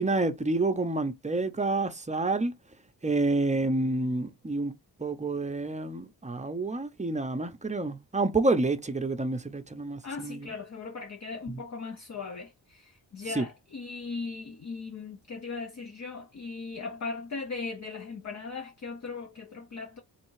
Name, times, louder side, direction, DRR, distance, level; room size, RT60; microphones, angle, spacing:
voice 1, 0.0-2.5 3.0-4.7 5.0-10.5 13.4-13.5, right 2 dB, 20° right, 0.6 m, -28 dB
voice 2, 10.0-20.0, left 4 dB, 45° left, 0.7 m, -38 dB
3.5 x 3.2 x 4.7 m
wide cardioid pair, 125°, 39 cm